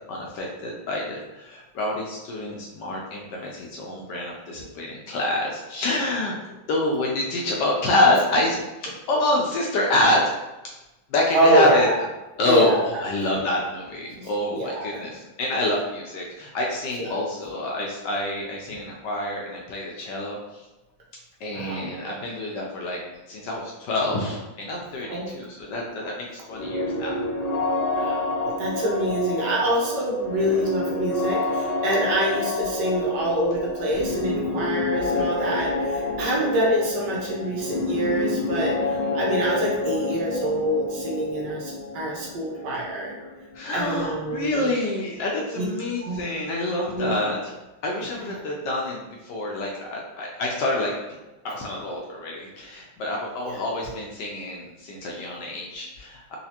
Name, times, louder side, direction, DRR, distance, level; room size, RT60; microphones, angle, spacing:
voice 1, 0.1-6.3 6.7-10.2 10.6-10.7 11.1-11.9 12.4-20.6 21.4-23.0 23.3-27.2 43.5-47.4 47.8-50.9 51.4-56.4, left 1 dB, 75° left, -2 dB, 1.1 m, -27 dB
voice 2, 11.3-12.0 12.5-12.8 14.2-15.0 17.0-17.1 21.5-21.9 25.1-25.3 28.0-38.8 39.1-43.1 43.7-44.7 45.6-45.7 46.0-46.2 46.9-47.1 48.2-48.3 53.5-53.6, right 1 dB, 65° right, -4 dB, 1.2 m, -25 dB
sound 1, 26.5-44.1, left 3 dB, 90° left, 1.6 m, -28 dB
4.1 x 2.4 x 2.8 m, 1.0 s
omnidirectional pair, 2.2 m